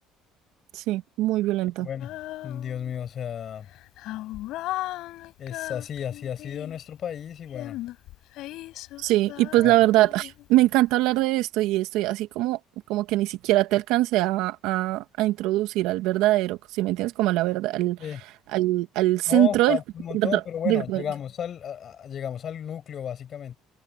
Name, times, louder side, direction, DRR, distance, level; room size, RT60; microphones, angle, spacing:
voice 1, 0.7-1.9 9.0-12.6 12.9-18.0 18.5-19.8 20.1-21.0, right 16 dB, 75° right, 1.9 m, -23 dB
voice 2, 1.8-2.2 2.4-3.7 5.4-7.8 9.6-9.7 18.0-18.2 19.3-23.6, left 9 dB, 40° left, 6.6 m, -33 dB
Female singing, 2.0-3.1 3.6-6.9 7.5-10.7, left 16 dB, 65° left, 7.0 m, -37 dB
cardioid pair, 145°, 0 cm